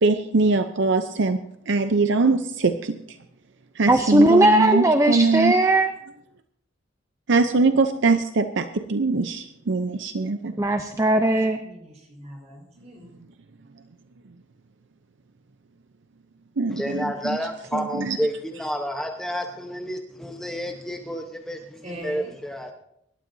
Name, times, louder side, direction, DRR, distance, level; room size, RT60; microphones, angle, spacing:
voice 1, 0.0-1.4 1.7-3.0 3.8-5.6 7.3-10.5 16.6-17.4 17.7-18.2, right 3 dB, 65° right, 8 dB, 0.7 m, -22 dB
voice 2, 3.9-5.9 10.6-11.6, right 1 dB, 15° right, 7 dB, 0.6 m, -18 dB
voice 3, 11.6-13.1 21.8-22.3, equal, 35° right, 1 dB, 4.8 m, -41 dB
voice 4, 16.7-22.7, equal, ahead, 2 dB, 1.0 m, -30 dB
25.0 x 12.5 x 2.7 m, 0.77 s
head